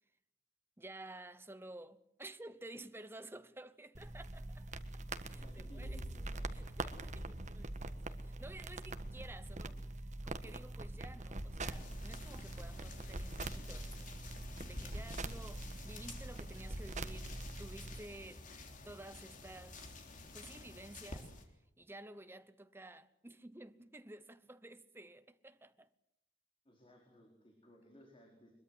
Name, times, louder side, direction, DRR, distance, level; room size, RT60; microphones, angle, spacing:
voice 1, 0.8-4.9 5.3-6.0 6.5-9.8 10.2-13.9 14.6-17.3 17.6-18.5 18.8-19.9 20.3-21.3 21.8-25.9, right 2 dB, 15° right, 0.9 m, -53 dB
sound 1, 3.9-18.0, right 2 dB, 40° right, 1.5 m, -44 dB
voice 2, 5.3-6.5 26.6-28.5, left 1 dB, 30° left, 4.5 m, -59 dB
sound 2, 11.6-21.4, left 2 dB, 45° left, 3.5 m, -51 dB
23.0 x 22.0 x 7.8 m
head